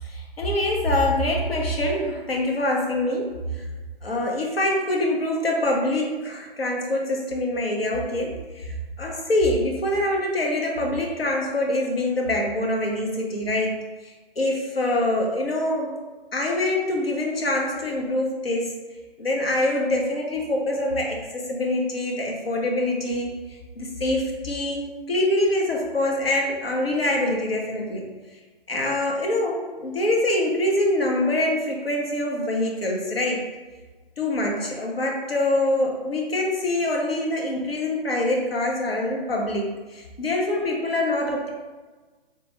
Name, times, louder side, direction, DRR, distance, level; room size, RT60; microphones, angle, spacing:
voice 1, 0.1-3.3 4.0-13.8 14.4-16.0 16.3-18.8 19.2-23.3 23.8-28.0 28.7-33.4 34.2-41.5, left 1 dB, 80° left, 0 dB, 0.7 m, -25 dB
3.1 x 2.2 x 2.9 m, 1.3 s
figure-of-eight pair, 130°, 30 cm